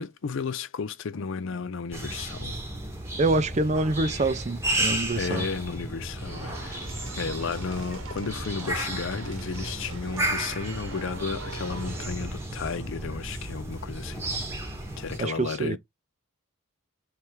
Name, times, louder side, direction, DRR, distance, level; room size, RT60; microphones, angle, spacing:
voice 1, 0.0-2.6 5.1-6.9 7.1-14.3 15.0-15.8, left 5 dB, 60° left, 0.5 m, -33 dB
sound 1, 1.9-15.2, right 1 dB, 10° right, 1.0 m, -33 dB
voice 2, 3.2-5.4 15.2-15.8, right 2 dB, 30° right, 0.4 m, -26 dB
sound 2, 6.2-12.1, right 3 dB, 70° right, 1.1 m, -43 dB
3.5 x 3.2 x 4.5 m
head